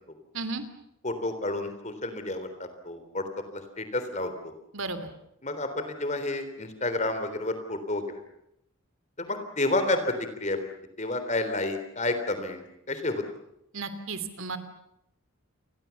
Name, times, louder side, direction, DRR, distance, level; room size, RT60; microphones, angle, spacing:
voice 1, 1.0-3.2 3.5-4.5 5.4-8.2 9.2-10.6 11.0-13.2, left 2 dB, 35° left, 9 dB, 3.6 m, -30 dB
voice 2, 4.7-5.1 13.7-14.6, right 3 dB, 70° right, 11 dB, 3.0 m, -33 dB
29.0 x 22.5 x 7.2 m, 0.79 s
head